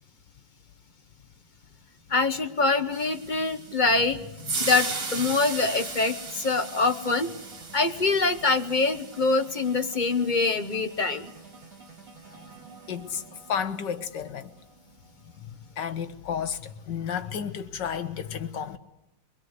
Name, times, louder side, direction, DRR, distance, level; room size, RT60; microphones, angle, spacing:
sound 1, 0.9-17.3, right 5 dB, 50° right, 4.6 m, -51 dB
voice 1, 2.1-4.2 4.6-7.3 7.7-11.3, left 3 dB, 30° left, 1.0 m, -24 dB
sound 2, 2.9-11.2, right 4 dB, 65° right, 3.3 m, -37 dB
voice 2, 12.9-14.5 15.4-18.8, left 7 dB, 75° left, 1.9 m, -32 dB
24.0 x 21.5 x 7.9 m
omnidirectional pair, 2.0 m